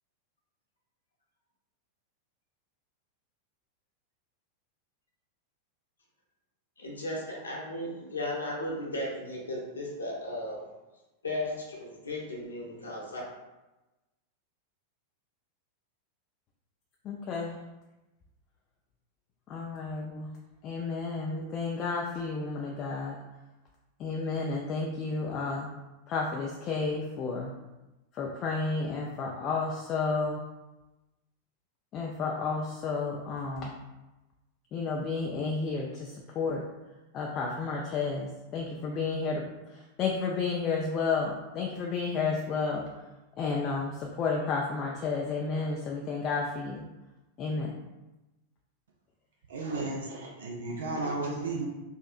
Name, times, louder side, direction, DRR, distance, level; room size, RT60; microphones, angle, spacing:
voice 1, 6.8-10.7 11.2-13.2, left 1 dB, 75° left, -3 dB, 0.9 m, -35 dB
voice 2, 17.1-17.6 19.5-20.3 20.6-23.2 24.0-25.7 26.1-27.5 28.2-30.4 31.9-33.7 34.7-36.6 37.1-39.4 40.0-42.8 43.4-46.9 47.4-47.7, left 4 dB, 35° left, -1 dB, 0.4 m, -31 dB
voice 3, 49.5-51.7, right 3 dB, 65° right, -1 dB, 0.5 m, -33 dB
4.0 x 2.7 x 2.4 m, 1.1 s
figure-of-eight pair, 90°, 0 cm